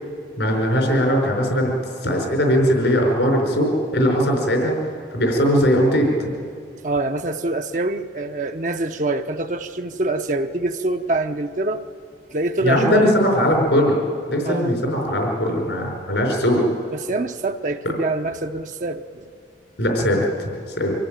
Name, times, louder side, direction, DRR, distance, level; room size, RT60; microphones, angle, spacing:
voice 1, 0.4-1.7 2.0-4.7 5.1-6.3 12.6-14.0 14.3-16.6 19.8-20.9, equal, 80° left, 1 dB, 5.2 m, -19 dB
voice 2, 6.8-11.9 12.3-13.1 14.4-14.7 16.9-19.3, right 2 dB, 45° right, 6 dB, 0.7 m, -25 dB
25.0 x 15.5 x 9.0 m, 2.5 s
head